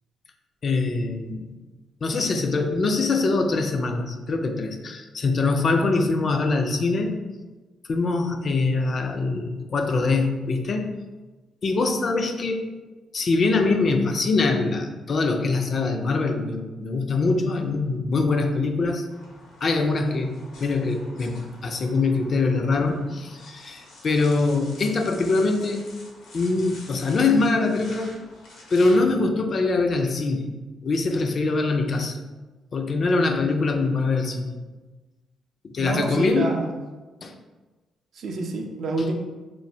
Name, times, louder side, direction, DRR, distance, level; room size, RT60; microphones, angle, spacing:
voice 1, 0.6-1.5 2.0-7.2 7.9-10.9 11.6-12.7 13.1-19.1 19.6-25.9 26.3-28.2 28.7-30.5 30.8-32.2 32.7-34.6 35.6-36.5 37.2-37.3, left 3 dB, 45° left, 4 dB, 0.3 m, -23 dB
sound 1, 19.1-29.1, left 2 dB, 80° left, 0.7 m, -47 dB
voice 2, 35.8-36.7 38.1-39.1, right 2 dB, 65° right, 3 dB, 0.4 m, -27 dB
3.0 x 2.0 x 2.6 m, 1.2 s
cardioid pair, 90°, 0 cm